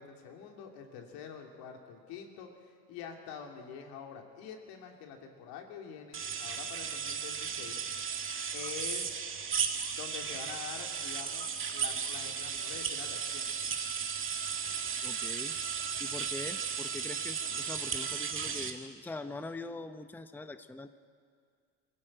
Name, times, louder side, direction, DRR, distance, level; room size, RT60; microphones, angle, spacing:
voice 1, 0.0-7.8 8.5-9.2 9.9-13.5, left 7 dB, 80° left, 3 dB, 3.0 m, -46 dB
sound 1, 6.1-18.7, right 6 dB, 35° right, 2.0 m, -35 dB
voice 2, 15.0-15.6 16.0-20.9, left 2 dB, 5° left, 10 dB, 0.8 m, -43 dB
22.5 x 15.0 x 8.9 m, 2.1 s
supercardioid pair, 100°, 36 cm